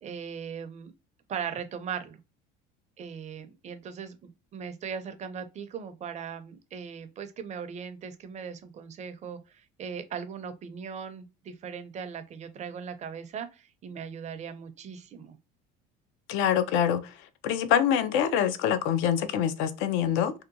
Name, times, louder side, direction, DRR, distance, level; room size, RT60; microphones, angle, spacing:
voice 1, 0.0-0.9 1.3-2.2 3.0-15.4, right 7 dB, 35° right, 0.5 m, -39 dB
voice 2, 16.3-17.0 17.4-20.3, left 9 dB, 70° left, 0.5 m, -25 dB
2.8 x 2.2 x 2.5 m
supercardioid pair, 110°, 21 cm